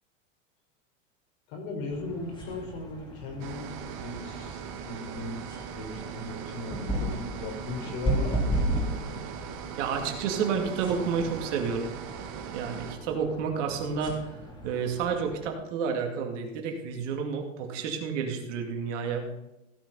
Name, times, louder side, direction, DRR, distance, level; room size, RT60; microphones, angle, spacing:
voice 1, 1.5-3.7 4.0-5.4 5.7-8.6, left 3 dB, 55° left, 2 dB, 4.4 m, -37 dB
sound 1, 1.9-15.5, right 1 dB, 10° left, 3.1 m, -35 dB
sound 2, 3.4-13.0, right 8 dB, 40° right, 1.6 m, -40 dB
voice 2, 9.8-11.9 12.5-14.2 14.6-19.2, right 6 dB, 60° right, 4 dB, 2.4 m, -30 dB
16.0 x 6.0 x 5.5 m, 0.94 s
hypercardioid pair, 125°, 40 cm